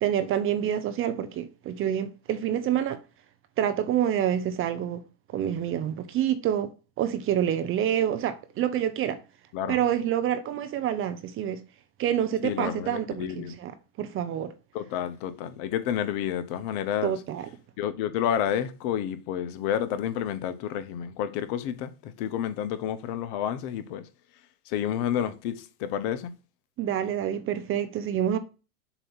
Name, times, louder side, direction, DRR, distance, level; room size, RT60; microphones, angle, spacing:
voice 1, 0.0-3.0 3.6-5.0 5.3-6.7 7.0-9.2 9.7-11.6 12.0-13.7 14.0-14.5 17.0-17.5 26.8-28.4, right 10 dB, 30° right, 0.6 m, -27 dB
voice 2, 9.5-9.8 12.4-13.5 14.7-17.2 17.8-24.1 24.7-26.3, left 9 dB, 50° left, 0.9 m, -30 dB
7.1 x 2.8 x 5.3 m
hypercardioid pair, 115°, 46 cm